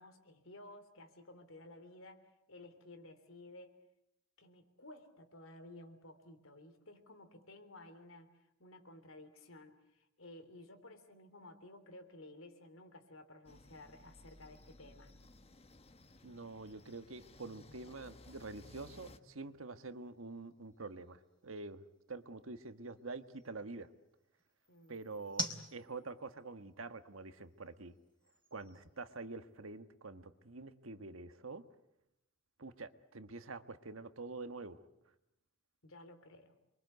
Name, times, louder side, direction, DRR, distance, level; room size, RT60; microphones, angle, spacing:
voice 1, 0.0-3.8 4.4-15.2 24.7-25.0 35.8-36.6, left 2 dB, 85° left, 8 dB, 3.5 m, -55 dB
sound 1, 13.5-19.2, left 2 dB, 30° left, 1.3 m, -59 dB
sound 2, 15.6-29.8, left 1 dB, 5° left, 3.9 m, -51 dB
voice 2, 16.2-23.9 24.9-28.0 28.5-31.6 32.6-34.8, right 3 dB, 85° right, 10 dB, 1.5 m, -47 dB
27.5 x 23.5 x 8.1 m, 0.81 s
head